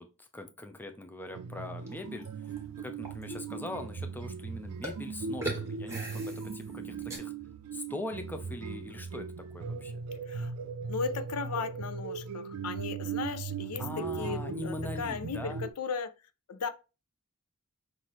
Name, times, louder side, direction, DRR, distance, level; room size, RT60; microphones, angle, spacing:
voice 1, 0.0-7.3 7.7-9.3 9.5-10.0 13.8-15.6, left 1 dB, 10° left, 0.4 m, -42 dB
sound 1, 1.3-15.7, right 5 dB, 80° right, 0.4 m, -38 dB
sound 2, 1.9-2.6 3.0-3.2 4.8-5.0 5.4-7.2, right 1 dB, 15° right, 1.3 m, -39 dB
voice 2, 3.3-3.7 10.3-10.5 10.9-16.1 16.5-16.7, left 5 dB, 90° left, 0.5 m, -36 dB
5.7 x 2.6 x 3.0 m
head